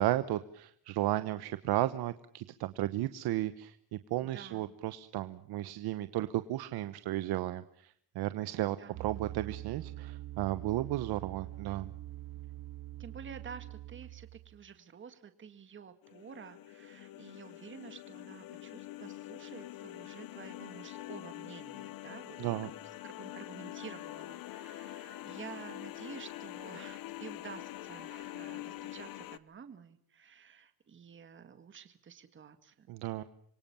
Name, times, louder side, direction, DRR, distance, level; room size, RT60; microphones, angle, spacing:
voice 1, 0.0-11.9 22.4-22.7 32.9-33.2, right 15 dB, 90° right, 12 dB, 1.1 m, -34 dB
voice 2, 4.2-4.8 8.8-9.1 13.0-22.4 23.0-32.9, right 7 dB, 30° right, 9 dB, 1.9 m, -50 dB
sound 1, 8.9-14.7, right 16 dB, 65° right, 1.0 m, -44 dB
sound 2, 16.0-29.4, left 15 dB, 65° left, 1.1 m, -45 dB
27.5 x 23.5 x 7.1 m, 0.68 s
cardioid pair, 155°, 37 cm